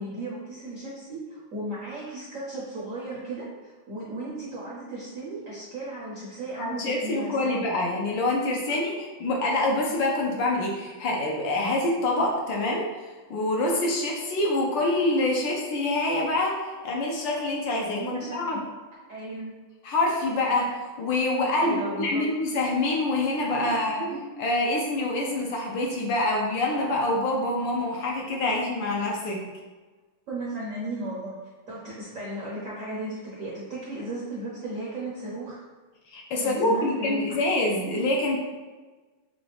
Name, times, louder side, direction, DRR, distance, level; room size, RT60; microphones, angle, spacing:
voice 1, 0.0-7.6 8.9-9.0 17.8-18.6 19.1-19.5 21.6-22.3 23.6-24.2 30.3-31.4 31.7-35.6 36.4-37.4, right 2 dB, 60° right, -6 dB, 0.8 m, -35 dB
voice 2, 6.6-12.9 13.3-18.6 19.8-24.0 24.4-29.5 36.1-38.4, left 2 dB, 70° left, -1 dB, 1.3 m, -26 dB
5.9 x 2.3 x 3.3 m, 1.3 s
omnidirectional pair, 2.3 m